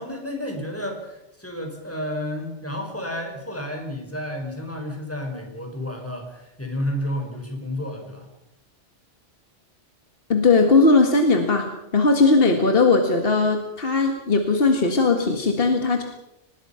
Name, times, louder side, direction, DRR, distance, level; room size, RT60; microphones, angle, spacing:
voice 1, 0.0-8.3, left 1 dB, 10° left, 3 dB, 5.1 m, -31 dB
voice 2, 10.3-11.7 11.9-16.0, left 3 dB, 55° left, 4 dB, 2.0 m, -18 dB
24.5 x 20.0 x 5.8 m, 0.88 s
omnidirectional pair, 1.2 m